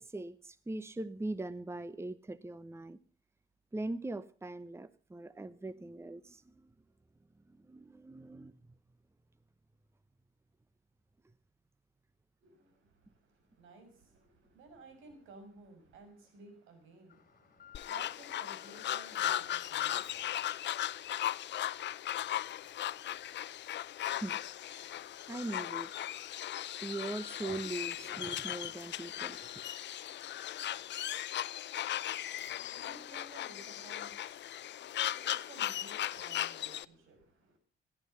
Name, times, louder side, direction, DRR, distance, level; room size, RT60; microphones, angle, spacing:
voice 1, 0.0-3.0 3.7-6.7 7.5-8.7 24.1-24.3 24.7-25.9 26.8-29.6, right 2 dB, 15° right, 0.9 m, -41 dB
voice 2, 12.4-20.4 31.7-37.6, right 3 dB, 90° right, 6.4 m, -56 dB
Alarm, 17.1-35.8 36.1-36.2 36.8-36.9, left 9 dB, 45° left, 2.6 m, -61 dB
sound 1, 17.7-36.8, left 12 dB, 65° left, 0.7 m, -37 dB
18.0 x 12.5 x 5.6 m
cardioid pair, 90°, 20 cm